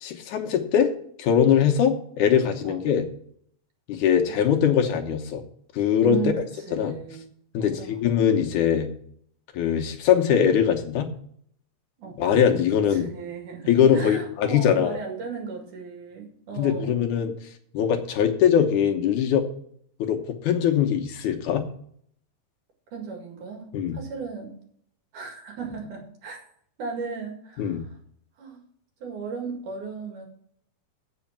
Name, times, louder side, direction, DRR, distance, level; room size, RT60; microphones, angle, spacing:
voice 1, 0.0-0.9 1.2-3.1 3.9-5.4 5.7-6.2 6.7-6.9 7.5-8.9 9.5-11.1 12.2-13.1 13.7-15.0 16.6-17.3 17.7-19.5 20.0-21.6 23.7-24.0 27.6-27.8, left 8 dB, 70° left, 4 dB, 2.3 m, -21 dB
voice 2, 6.0-7.3 7.6-8.0 12.0-12.2 12.9-17.0 22.9-24.6 25.1-26.4 26.8-27.9 28.4-28.6 29.0-30.3, right 5 dB, 70° right, 1 dB, 3.5 m, -36 dB
8.3 x 6.3 x 7.2 m, 0.65 s
omnidirectional pair, 3.8 m